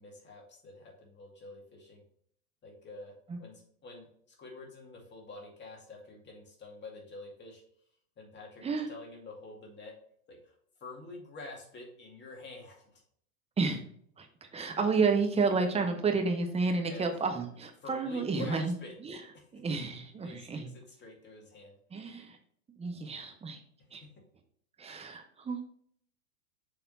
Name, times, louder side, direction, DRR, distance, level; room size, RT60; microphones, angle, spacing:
voice 1, 0.0-2.0 2.6-3.1 3.4-7.6 8.2-9.9 10.3-10.6 10.8-13.0 16.8-17.0 17.8-18.9 19.3-19.6 20.2-21.7 24.0-24.1, left 3 dB, 25° left, 1 dB, 2.1 m, -48 dB
voice 2, 14.2-18.7 19.0-19.2 19.5-20.7 21.9-22.4 22.7-23.6 23.9-24.0 24.8-25.6, right 4 dB, 15° right, 4 dB, 0.8 m, -31 dB
7.0 x 3.5 x 4.1 m, 0.63 s
hypercardioid pair, 105°, 45 cm